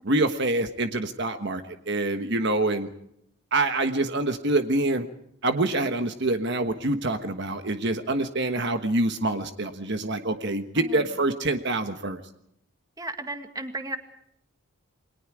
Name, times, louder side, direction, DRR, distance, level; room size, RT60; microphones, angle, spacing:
voice 1, 0.0-2.9 3.5-5.1 5.4-12.2, right 2 dB, 50° right, 8 dB, 1.3 m, -26 dB
voice 2, 13.0-14.0, right 2 dB, 15° right, 7 dB, 1.9 m, -34 dB
28.5 x 22.0 x 4.9 m, 0.72 s
head